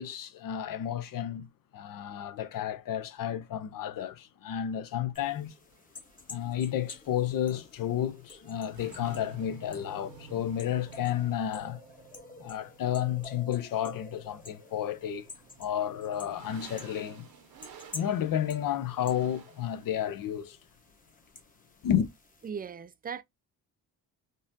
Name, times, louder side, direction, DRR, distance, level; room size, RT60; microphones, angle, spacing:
voice 1, 0.0-1.5 1.7-5.5 6.3-11.8 12.4-15.3 15.6-17.3 17.9-20.6 21.8-22.1, left 10 dB, 60° left, 0.6 m, -31 dB
sound 1, 5.1-22.5, left 2 dB, 20° left, 1.0 m, -51 dB
sound 2, 5.7-19.9, right 7 dB, 65° right, 1.0 m, -53 dB
voice 2, 22.4-23.2, right 7 dB, 25° right, 0.4 m, -38 dB
3.9 x 2.5 x 2.6 m
cardioid pair, 85°, 38 cm